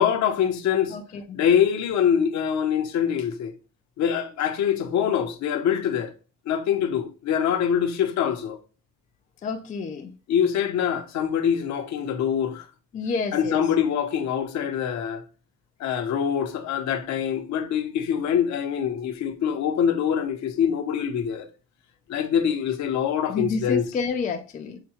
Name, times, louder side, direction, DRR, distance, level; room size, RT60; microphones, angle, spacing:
voice 1, 0.0-1.0 1.3-3.5 4.0-6.1 6.5-8.6 10.3-12.6 13.3-15.2 15.8-21.5 22.1-23.8, left 8 dB, 50° left, 0.8 m, -24 dB
voice 2, 0.9-1.4 9.4-10.1 12.9-13.6 23.3-24.8, left 4 dB, 25° left, 0.4 m, -29 dB
6.6 x 2.2 x 2.8 m
cardioid pair, 135°, 36 cm